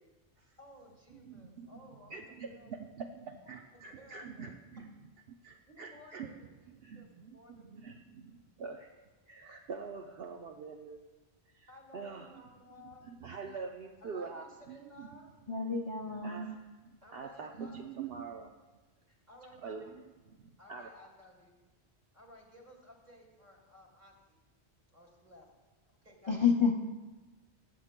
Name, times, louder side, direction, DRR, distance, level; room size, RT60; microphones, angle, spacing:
voice 1, 0.6-2.2 2.5-2.7 3.7-4.5 5.7-6.5 7.0-7.1 7.3-7.8 11.7-13.0 14.0-15.3 17.0-17.9 19.1-19.9 20.6-21.6 22.1-24.4 24.9-25.5 25.9-26.4, left 1 dB, 40° right, -1 dB, 2.4 m, -56 dB
voice 2, 1.1-11.0 11.4-15.4 16.1-18.5 19.5-20.9, right 5 dB, 65° right, 2 dB, 0.8 m, -46 dB
voice 3, 15.5-16.5 26.3-26.7, left 6 dB, 35° left, 0 dB, 0.6 m, -29 dB
20.5 x 8.5 x 2.2 m, 1.2 s
omnidirectional pair, 1.1 m